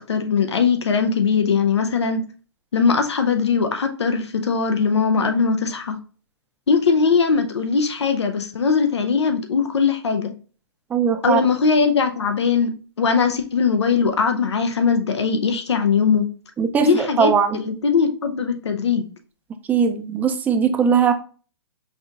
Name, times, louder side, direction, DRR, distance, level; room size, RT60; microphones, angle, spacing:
voice 1, 0.1-2.2 2.7-6.0 6.7-10.3 11.2-12.7 13.0-16.3 16.8-19.1, left 5 dB, 85° left, 6 dB, 0.6 m, -20 dB
voice 2, 10.9-11.4 16.6-17.6 19.7-21.1, right 7 dB, 10° right, 7 dB, 0.3 m, -19 dB
5.4 x 2.8 x 2.4 m, 0.40 s
hypercardioid pair, 125°, 14 cm